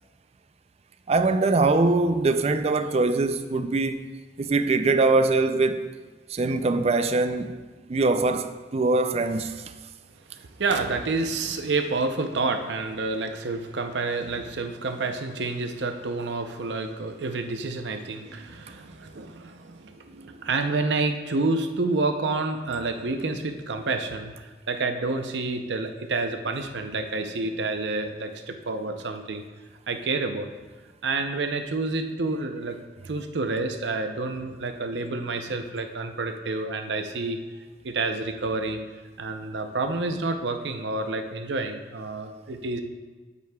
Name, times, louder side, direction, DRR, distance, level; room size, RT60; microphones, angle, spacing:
voice 1, 1.1-4.1 4.4-5.9 6.3-7.6 7.9-9.7, right 3 dB, 35° right, 0.4 m, -23 dB
voice 2, 10.3-29.4 29.9-30.5 31.0-32.8 33.1-37.4 37.8-38.8 39.2-42.8, right 3 dB, 80° right, 0.7 m, -29 dB
9.4 x 8.2 x 2.3 m
head